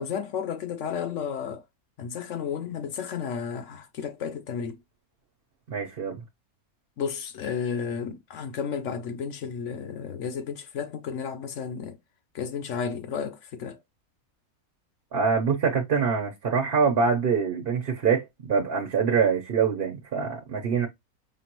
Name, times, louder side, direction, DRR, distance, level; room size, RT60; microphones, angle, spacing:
voice 1, 0.0-1.6 2.0-4.8 7.0-12.0 12.3-13.8, left 7 dB, 60° left, 1.1 m, -32 dB
voice 2, 5.7-6.2 15.1-20.9, right 6 dB, 45° right, 0.9 m, -24 dB
5.3 x 2.5 x 2.9 m
omnidirectional pair, 1.5 m